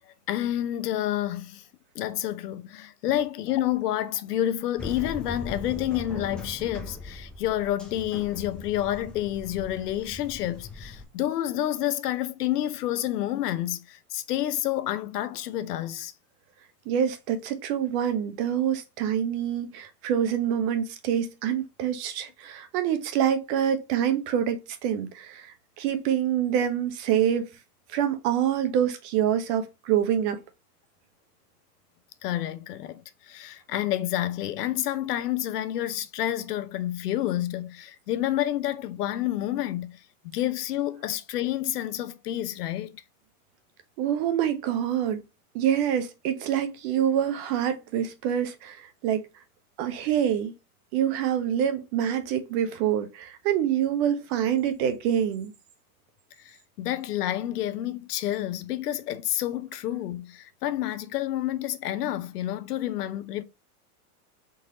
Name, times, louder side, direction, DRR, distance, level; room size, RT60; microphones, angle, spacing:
voice 1, 0.3-1.6 1.9-16.1 32.2-43.0 56.4-63.4, left 13 dB, 85° left, 0.7 m, -29 dB
sound 1, 4.8-11.0, left 2 dB, ahead, 0.5 m, -40 dB
voice 2, 16.9-27.5 27.9-30.4 44.0-45.2 45.5-49.3 49.8-50.5 50.9-55.5, right 9 dB, 45° right, 0.9 m, -26 dB
4.0 x 2.9 x 3.7 m
supercardioid pair, 135°, 46 cm